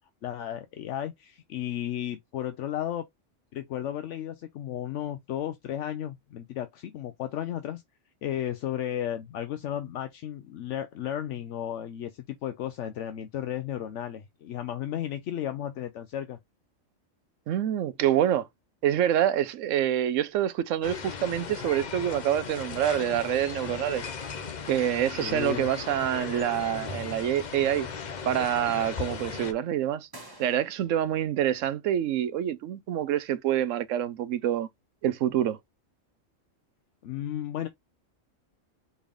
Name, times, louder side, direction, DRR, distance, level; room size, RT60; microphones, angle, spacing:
voice 1, 0.2-3.0 3.5-7.8 8.2-16.4 25.2-25.7 37.0-37.7, left 11 dB, 75° left, 0.9 m, -34 dB
voice 2, 17.5-18.5 18.8-24.0 24.7-27.9 28.2-30.1 30.4-34.7 35.0-35.6, right 11 dB, 80° right, 1.0 m, -26 dB
sound 1, 20.8-29.5, left 6 dB, 45° left, 0.7 m, -37 dB
sound 2, 26.3-27.3 30.1-31.1, right 1 dB, 20° right, 1.4 m, -51 dB
4.2 x 3.5 x 3.4 m
omnidirectional pair, 1.3 m